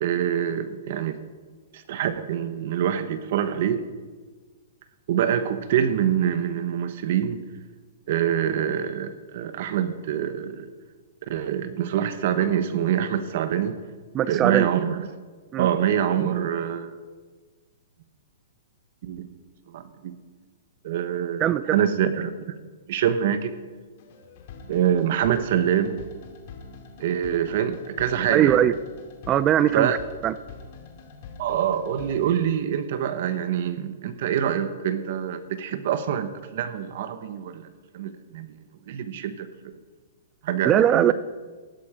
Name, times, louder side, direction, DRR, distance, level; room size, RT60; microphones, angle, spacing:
voice 1, 0.0-1.2 1.7-3.9 5.1-7.4 8.1-10.7 11.3-13.8 14.3-15.1 15.6-16.9 19.0-19.3 19.7-20.2 20.8-22.6 22.9-23.5 24.7-26.0 27.0-28.6 29.7-29.9 31.4-37.7 37.9-38.5 38.9-39.5 40.4-41.1, right 9 dB, 55° right, 11 dB, 1.1 m, -25 dB
voice 2, 14.1-14.7 15.5-15.7 21.4-21.8 28.3-28.7 29.3-30.0 30.2-30.3 40.6-41.1, right 11 dB, 25° right, 16 dB, 0.4 m, -20 dB
sound 1, 24.0-32.3, left 5 dB, 50° left, 2.5 m, -44 dB
16.0 x 12.0 x 5.1 m, 1.4 s
hypercardioid pair, 150°, 0 cm